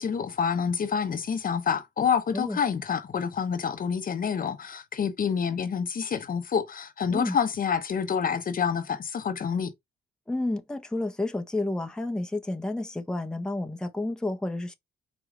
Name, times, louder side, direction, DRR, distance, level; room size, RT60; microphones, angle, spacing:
voice 1, 0.0-9.7, left 7 dB, 45° left, 0.8 m, -28 dB
voice 2, 10.3-14.7, left 2 dB, 5° left, 0.7 m, -30 dB
4.8 x 3.0 x 3.7 m
cardioid pair, 90°, 20 cm